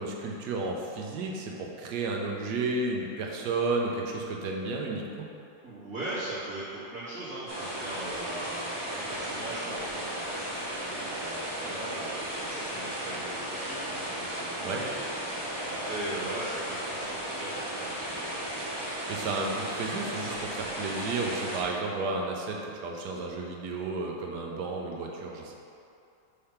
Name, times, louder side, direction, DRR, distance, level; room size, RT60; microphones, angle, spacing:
voice 1, 0.0-5.3 14.6-14.8 18.9-25.6, right 3 dB, 85° right, 0 dB, 1.4 m, -32 dB
voice 2, 5.6-14.9 15.2-18.4, right 1 dB, 55° right, -13 dB, 1.9 m, -40 dB
sound 1, 7.5-21.6, right 1 dB, 20° right, 0.7 m, -35 dB
5.7 x 3.4 x 5.6 m, 2.6 s
omnidirectional pair, 1.7 m